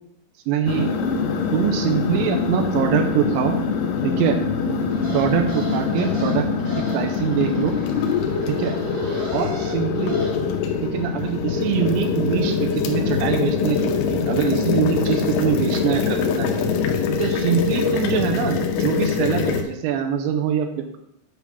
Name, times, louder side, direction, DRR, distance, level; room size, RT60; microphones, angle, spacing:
voice 1, 0.5-3.6 4.0-4.4 5.1-6.5 6.8-7.8 8.5-8.7 9.3-10.2 10.8-16.5 17.2-20.7, right 8 dB, 85° right, 4 dB, 2.9 m, -23 dB
sound 1, 0.7-19.6, left 5 dB, 80° left, 2.3 m, -23 dB
sound 2, 4.9-10.3, equal, 55° right, 3.1 m, -36 dB
8.3 x 3.7 x 5.7 m, 0.79 s
omnidirectional pair, 5.3 m